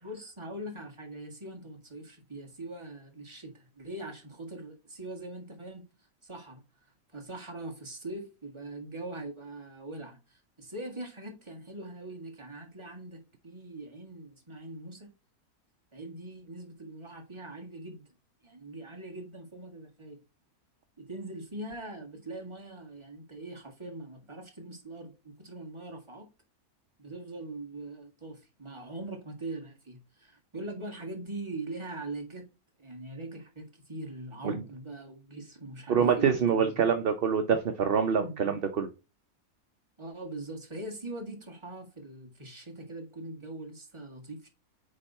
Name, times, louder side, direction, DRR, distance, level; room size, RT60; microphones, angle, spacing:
voice 1, 0.0-5.8 6.2-6.6 7.1-15.1 15.9-18.0 18.4-20.2 21.0-26.3 27.0-32.4 32.8-36.8 38.2-38.4 40.0-44.5, right 2 dB, 20° right, 1.7 m, -42 dB
voice 2, 35.9-38.9, right 7 dB, 50° right, 0.7 m, -25 dB
9.0 x 3.3 x 4.1 m
omnidirectional pair, 1.5 m